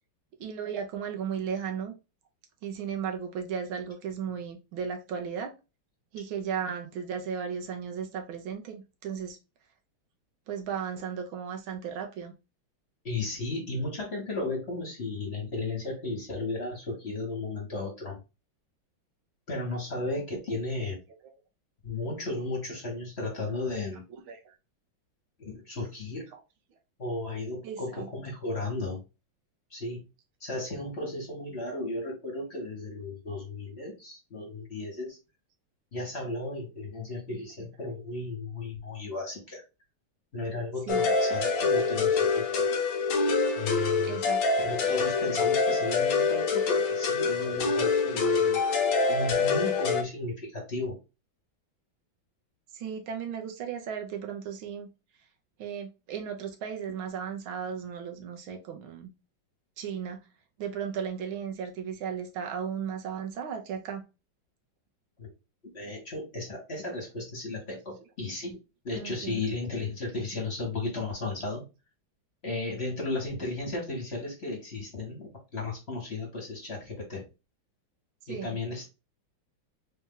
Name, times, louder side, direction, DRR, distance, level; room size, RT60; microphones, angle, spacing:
voice 1, 0.4-1.9 2.6-5.5 6.1-9.4 10.5-12.3 24.3-24.6 27.6-28.1 40.9-41.1 44.0-44.4 52.7-54.9 55.6-59.1 59.8-60.2 60.6-64.0 69.0-69.4 78.3-78.6, right 7 dB, 80° right, 4 dB, 1.7 m, -35 dB
voice 2, 13.0-18.2 19.5-21.0 21.8-24.0 25.4-26.3 27.0-29.0 29.7-30.0 30.4-35.2 35.9-39.6 40.3-42.7 43.6-44.2 44.6-48.6 49.1-51.0 65.2-65.3 65.7-68.6 68.8-71.6 72.4-77.2 78.3-78.9, left 2 dB, 35° left, -1 dB, 1.6 m, -34 dB
sound 1, 40.9-50.0, left 4 dB, 60° left, 1.0 m, -25 dB
4.2 x 2.8 x 3.7 m, 0.27 s
omnidirectional pair, 2.2 m